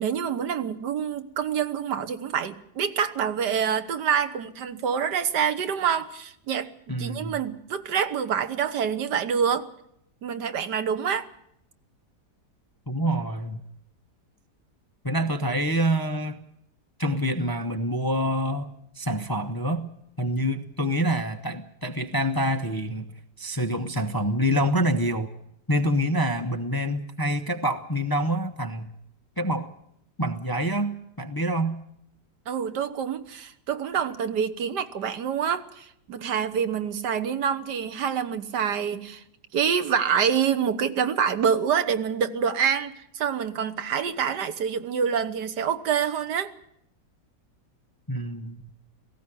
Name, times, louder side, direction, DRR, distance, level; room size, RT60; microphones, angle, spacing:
voice 1, 0.0-9.7 10.2-11.3 32.5-39.2 39.5-46.5, right 7 dB, 80° right, 11 dB, 1.7 m, -26 dB
voice 2, 6.9-7.4 12.9-13.6 15.0-16.4 17.0-19.9 20.2-23.1 23.4-25.3 25.7-28.9 29.4-29.7 30.2-31.8 48.1-48.6, equal, 20° left, 6 dB, 0.7 m, -26 dB
18.0 x 16.0 x 10.0 m, 0.72 s
omnidirectional pair, 1.8 m